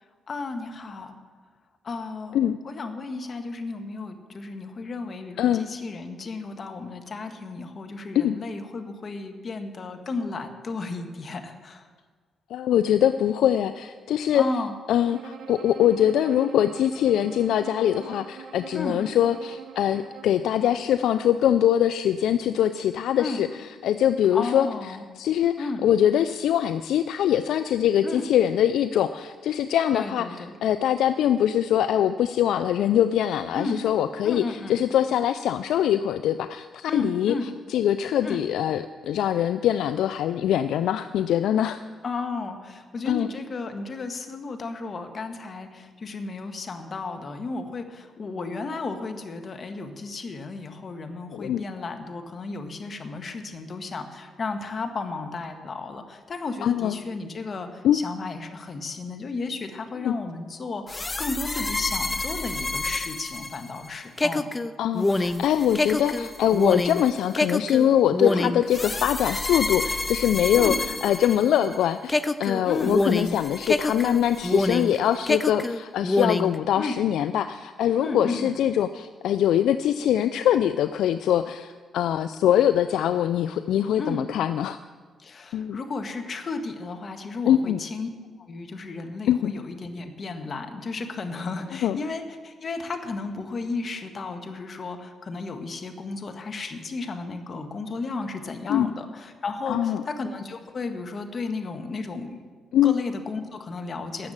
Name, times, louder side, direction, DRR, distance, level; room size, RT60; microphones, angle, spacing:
voice 1, 0.3-1.1 1.8-2.4 2.6-11.9 14.3-14.7 18.7-19.0 23.2-23.4 24.3-25.0 25.6-25.9 28.0-28.3 29.9-30.5 33.5-33.8 34.2-34.8 36.9-37.5 38.2-38.4 42.0-64.5 68.3-68.5 70.6-70.8 72.7-72.9 76.7-77.0 78.0-78.5 84.0-84.2 85.2-88.1 88.5-102.5 102.8-104.3, left 3 dB, 50° left, 6 dB, 1.5 m, -33 dB
voice 2, 12.5-14.4 14.9-30.3 30.6-41.8 43.1-43.3 51.3-51.6 56.6-57.0 57.8-58.0 60.0-60.1 64.8-84.8 85.5-85.8 87.5-87.8 89.3-89.5 91.8-92.0 98.7-98.9 99.7-100.0 102.7-102.9, left 10 dB, 75° left, 12 dB, 0.3 m, -23 dB
Bowed string instrument, 15.0-20.5, right 8 dB, 70° right, 0.8 m, -44 dB
sound 1, 60.9-71.8 72.1-75.0 75.3-76.6, left 2 dB, 25° left, 0.6 m, -27 dB
13.0 x 7.2 x 8.7 m, 1.5 s
supercardioid pair, 55°, 0 cm